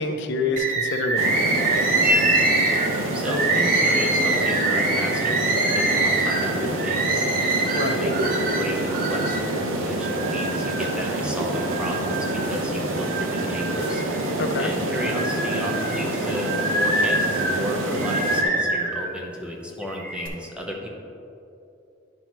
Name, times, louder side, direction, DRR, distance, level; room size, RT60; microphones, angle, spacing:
voice 1, 0.0-2.0 7.7-8.0 14.4-14.7, left 2 dB, 60° left, 5 dB, 0.6 m, -27 dB
Bird, 0.6-9.5 10.0-11.0 11.5-12.5 13.0-14.3 14.8-19.1 19.8-20.3, right 2 dB, 45° right, 0.8 m, -25 dB
sound 1, 1.2-18.4, right 1 dB, 80° right, 0.8 m, -27 dB
voice 2, 3.1-5.5 5.7-7.2 7.8-14.0 14.6-20.9, left 1 dB, 5° right, -1 dB, 0.8 m, -33 dB
10.0 x 5.4 x 3.1 m, 2.8 s
head